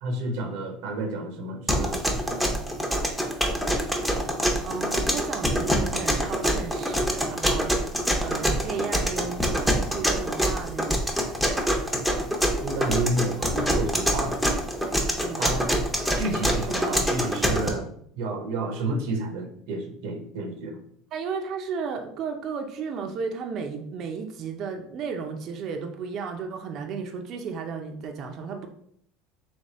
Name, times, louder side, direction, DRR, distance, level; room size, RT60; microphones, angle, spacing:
voice 1, 0.0-2.4 12.6-14.4 15.4-15.7 16.2-17.9 18.2-20.8, right 2 dB, 75° right, 5 dB, 0.8 m, -30 dB
sound 1, 1.7-17.7, equal, ahead, 0.7 m, -25 dB
voice 2, 4.6-11.0 15.2-15.6 21.1-28.7, right 5 dB, 45° right, 4 dB, 0.5 m, -34 dB
3.4 x 3.1 x 4.1 m, 0.66 s
supercardioid pair, 130°, 0 cm